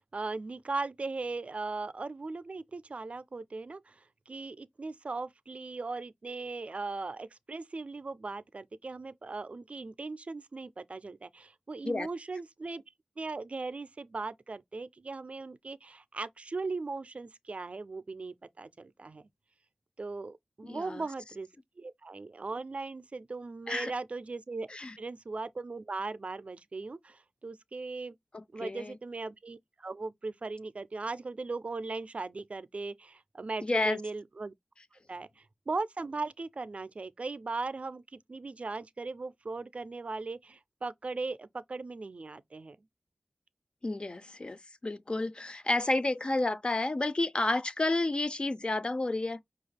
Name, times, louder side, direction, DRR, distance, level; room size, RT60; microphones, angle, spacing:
voice 1, 0.0-12.8 13.2-19.3 20.0-21.5 21.8-28.1 28.5-34.5 35.1-42.8, right 3 dB, 50° right, 0.4 m, -38 dB
voice 2, 20.6-21.0 23.7-23.9 24.7-24.9 28.3-29.0 33.6-34.0 43.8-49.4, left 2 dB, 35° left, 0.4 m, -31 dB
5.5 x 2.4 x 3.2 m
wide cardioid pair, 90°, 3 cm